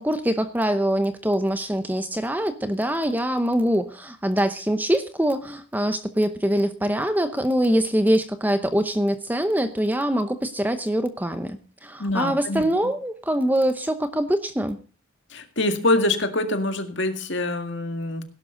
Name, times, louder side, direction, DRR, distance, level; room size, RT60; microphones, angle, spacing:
voice 1, 0.0-14.8, equal, 10° right, 10 dB, 0.8 m, -24 dB
voice 2, 12.0-12.7 15.3-18.2, left 2 dB, 55° left, 7 dB, 2.0 m, -25 dB
17.0 x 11.5 x 3.9 m, 0.36 s
head